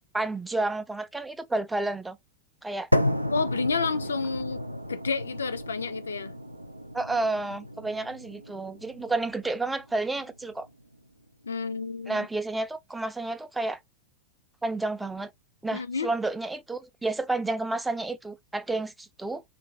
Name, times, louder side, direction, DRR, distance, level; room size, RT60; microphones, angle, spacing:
voice 1, 0.0-2.2 2.6-2.9 6.9-10.7 12.1-13.8 14.6-15.3 15.6-19.4, right 2 dB, 5° right, 0.4 m, -30 dB
sound 1, 2.9-10.9, left 1 dB, 90° right, 0.3 m, -32 dB
voice 2, 3.3-4.6 4.9-6.3 11.4-12.3 15.7-16.1, left 4 dB, 70° left, 0.4 m, -30 dB
3.3 x 2.0 x 2.7 m
figure-of-eight pair, 90°, 0 cm